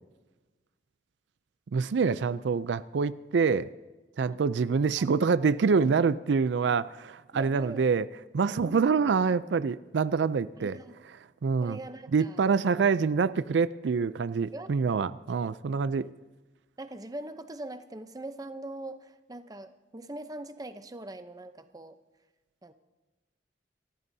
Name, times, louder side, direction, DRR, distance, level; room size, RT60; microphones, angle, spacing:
voice 1, 1.7-3.7 4.2-8.1 8.3-10.8 11.4-11.8 12.1-16.1, right 5 dB, 80° right, 16 dB, 0.4 m, -26 dB
voice 2, 7.3-7.8 8.6-8.9 10.6-11.0 11.6-12.4 14.5-15.1 16.8-22.0 22.6-22.7, right 1 dB, 20° right, 9 dB, 0.7 m, -42 dB
28.5 x 14.5 x 2.7 m, 1.2 s
head